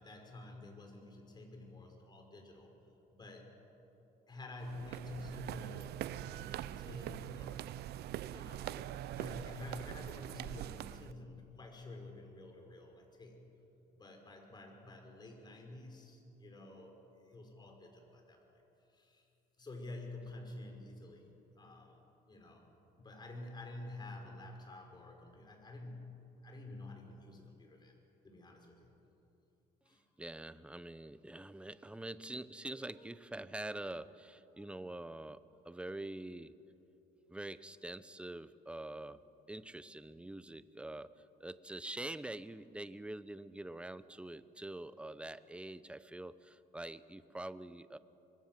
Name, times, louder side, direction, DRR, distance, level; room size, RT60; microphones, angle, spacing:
voice 1, 0.0-2.7 3.1-3.6 4.3-7.8 8.3-13.5 13.9-18.6 18.9-19.3 19.6-21.3 21.6-22.7 23.0-28.0 28.2-28.9 29.8-30.0, left 2 dB, 25° left, 3 dB, 5.2 m, -50 dB
sound 1, 4.6-11.1, right 12 dB, 70° right, 0.7 m, -43 dB
voice 2, 30.2-36.6 37.3-39.2 39.5-48.0, right 1 dB, 5° right, 14 dB, 0.8 m, -45 dB
25.5 x 22.0 x 7.6 m, 2.9 s
cardioid pair, 110°, 17 cm